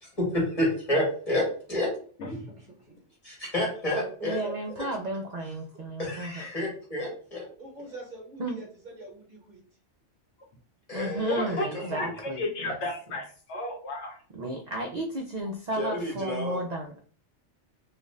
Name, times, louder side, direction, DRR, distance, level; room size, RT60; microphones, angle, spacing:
voice 1, 0.0-1.4 1.7-1.9 3.2-4.4 6.0-7.5 10.9-12.1 15.7-16.6, left 1 dB, 30° left, -3 dB, 1.1 m, -29 dB
voice 2, 2.3-3.0 4.0-4.5 7.0-7.1 7.6-9.6, right 2 dB, 45° right, -1 dB, 1.0 m, -44 dB
voice 3, 4.3-6.4 8.4-8.6 10.9-12.8 13.1-13.2 14.3-17.0, right 1 dB, 65° right, 1 dB, 0.4 m, -33 dB
voice 4, 11.3-11.7 12.0-12.1 12.4-14.2, left 1 dB, 75° left, 3 dB, 0.9 m, -33 dB
2.4 x 2.4 x 3.1 m, 0.43 s
omnidirectional pair, 1.2 m